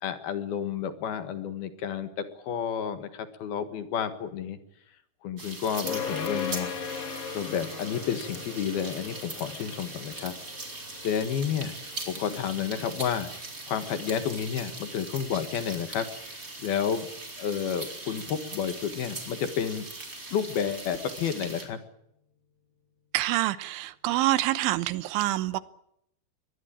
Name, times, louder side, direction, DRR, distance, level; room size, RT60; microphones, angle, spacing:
voice 1, 0.0-4.6 5.2-6.8 7.3-10.4 11.0-13.4 13.7-16.1 16.3-17.1 17.4-19.9 20.3-21.8, left 8 dB, 65° left, 3.2 m, -31 dB
sound 1, 5.4-21.6, right 2 dB, 20° right, 4.1 m, -40 dB
sound 2, 5.8-17.2, left 6 dB, 80° left, 5.4 m, -40 dB
voice 2, 23.1-25.6, right 16 dB, 85° right, 3.5 m, -26 dB
23.5 x 19.5 x 8.7 m
omnidirectional pair, 5.3 m